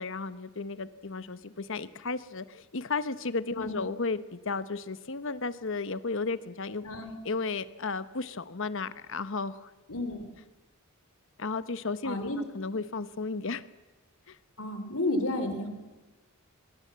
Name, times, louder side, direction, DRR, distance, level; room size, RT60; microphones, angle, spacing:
voice 1, 0.0-6.9 7.2-9.7 11.4-13.6 14.3-14.4, left 4 dB, 60° left, 13 dB, 1.0 m, -34 dB
voice 2, 9.9-10.3 12.0-12.4 14.6-15.7, left 1 dB, 75° left, 7 dB, 3.9 m, -31 dB
22.0 x 22.0 x 7.6 m, 1.1 s
head